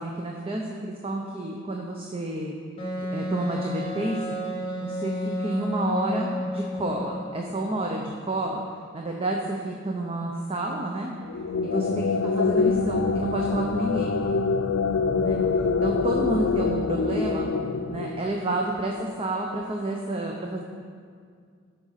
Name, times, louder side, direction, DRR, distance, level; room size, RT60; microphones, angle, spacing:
voice 1, 0.0-2.5 3.1-4.4 4.8-8.6 8.9-11.1 11.6-12.1 12.4-14.2 15.2-15.4 15.8-17.5 17.9-20.6, right 1 dB, 30° right, 0 dB, 0.7 m, -30 dB
Wind instrument woodwind instrument, 2.8-7.4, left 1 dB, 30° left, 1.8 m, -31 dB
sound 1, 11.2-18.7, left 4 dB, 75° left, 0.5 m, -25 dB
13.0 x 5.2 x 5.7 m, 2.1 s
head